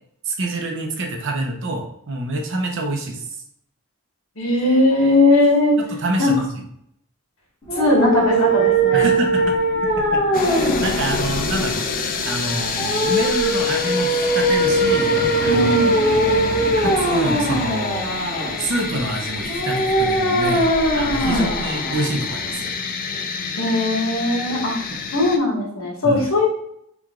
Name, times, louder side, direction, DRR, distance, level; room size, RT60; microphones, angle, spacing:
voice 1, 0.3-3.2 5.8-6.5 8.9-9.5 10.1-11.9 12.2-15.8 16.1-22.8 24.9-25.0 26.0-26.3, right 2 dB, 55° right, 2 dB, 0.8 m, -27 dB
voice 2, 4.4-5.8 6.2-6.3 7.7-9.1 15.5-16.0 21.2-21.5 23.5-24.7 25.1-26.5, left 2 dB, 65° left, -2 dB, 1.5 m, -19 dB
sound 1, 7.6-22.6, right 1 dB, 20° left, 1.7 m, -21 dB
sound 2, 10.3-25.4, left 4 dB, 40° left, 0.4 m, -27 dB
4.7 x 2.6 x 3.7 m, 0.73 s
head